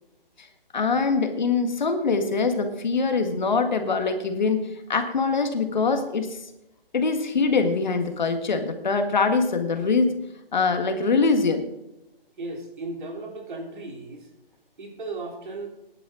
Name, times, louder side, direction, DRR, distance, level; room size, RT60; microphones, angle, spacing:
voice 1, 0.7-6.3 6.9-10.1 10.5-11.7, left 4 dB, 50° left, 6 dB, 1.7 m, -23 dB
voice 2, 12.4-14.3 14.8-15.7, right 2 dB, 55° right, 1 dB, 3.6 m, -36 dB
17.5 x 11.0 x 3.8 m, 0.89 s
hypercardioid pair, 180°, 29 cm